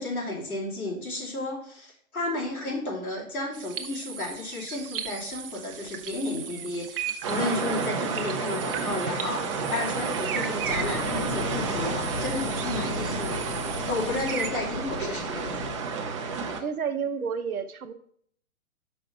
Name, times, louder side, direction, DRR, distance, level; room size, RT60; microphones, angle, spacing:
voice 1, 0.0-13.5 13.9-15.8, left 2 dB, 90° left, -4 dB, 3.0 m, -33 dB
sound 1, 3.5-14.5, right 8 dB, 40° right, 0.8 m, -38 dB
sound 2, 7.2-16.6, right 5 dB, 25° right, 0.5 m, -31 dB
Fire, 10.6-15.9, left 4 dB, 70° left, 1.2 m, -36 dB
voice 2, 16.6-17.9, right 6 dB, 80° right, 10 dB, 0.8 m, -30 dB
5.6 x 5.3 x 4.5 m, 0.63 s
figure-of-eight pair, 125°, 42 cm